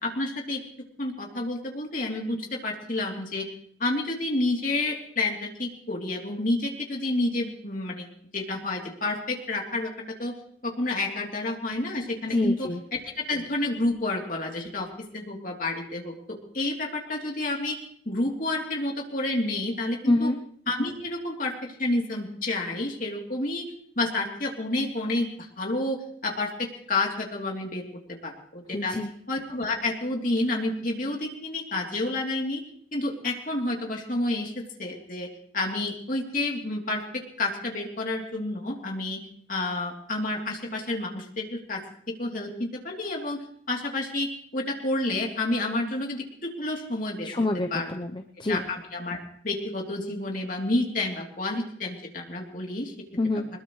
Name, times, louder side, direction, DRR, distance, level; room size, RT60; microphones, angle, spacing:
voice 1, 0.0-0.6 1.0-3.5 3.8-9.9 10.2-10.3 10.6-17.8 18.0-20.3 20.7-23.7 24.0-29.0 29.3-32.6 32.9-35.3 35.5-39.2 39.5-41.8 42.1-46.2 46.6-47.3 47.7-47.9 48.5-49.2 49.4-52.9, left 2 dB, 45° left, 0 dB, 3.2 m, -29 dB
voice 2, 12.3-12.8 20.1-20.4 28.7-29.1 47.2-48.6 53.2-53.5, left 2 dB, 25° left, 5 dB, 0.7 m, -26 dB
21.5 x 21.0 x 3.2 m, 0.63 s
head